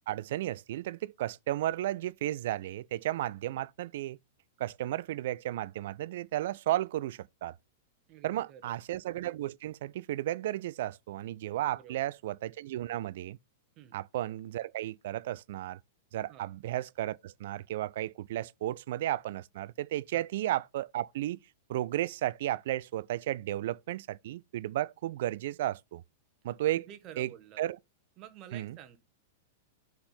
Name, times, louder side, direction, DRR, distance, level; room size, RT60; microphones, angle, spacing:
voice 1, 0.1-4.2 4.6-7.6 8.2-13.4 13.9-15.8 16.1-21.4 21.7-26.0 26.4-26.8 27.2-27.3 27.6-27.8 28.5-28.8, right 14 dB, 60° right, 0.3 m, -34 dB
voice 2, 8.1-8.8 11.7-12.0 13.8-14.0 16.3-16.5 20.1-20.3 26.7-27.6 28.2-29.0, right 10 dB, 40° right, 1.2 m, -50 dB
5.7 x 4.3 x 5.2 m
figure-of-eight pair, 100°, 0 cm